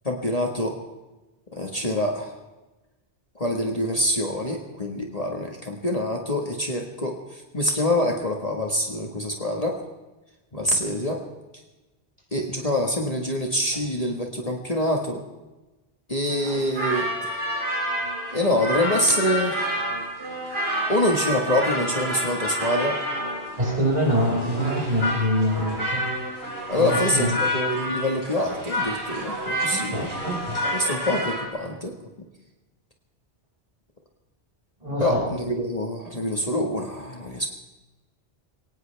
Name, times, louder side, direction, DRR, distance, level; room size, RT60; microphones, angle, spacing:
voice 1, 0.1-0.8 1.5-2.4 3.4-9.8 10.5-11.2 12.3-15.2 16.1-17.4 18.3-19.7 20.9-23.0 26.7-30.1 30.7-32.0 35.0-37.5, left 1 dB, 35° left, 1 dB, 1.8 m, -25 dB
sound 1, 16.3-31.5, equal, 65° right, 5.4 m, -29 dB
voice 2, 23.6-26.1 26.7-27.3 29.6-30.6 31.6-31.7 34.8-35.3, equal, 40° right, -3 dB, 5.9 m, -25 dB
22.5 x 18.5 x 3.4 m, 1.1 s
omnidirectional pair, 1.1 m